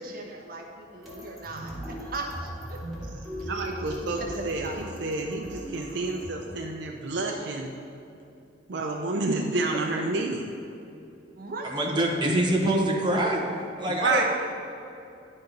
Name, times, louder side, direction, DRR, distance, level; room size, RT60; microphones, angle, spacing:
voice 1, 0.0-2.8 4.2-5.1 9.7-9.9 11.4-12.0, right 2 dB, 55° right, 0 dB, 1.0 m, -38 dB
sound 1, 1.0-6.3, equal, ahead, 2.0 m, -39 dB
voice 2, 3.5-7.7 8.7-10.5 14.0-14.2, right 3 dB, 75° right, 1 dB, 0.6 m, -29 dB
voice 3, 11.6-13.4 13.8-14.2, right 1 dB, 25° right, -1 dB, 1.0 m, -24 dB
10.5 x 4.3 x 5.2 m, 2.7 s
head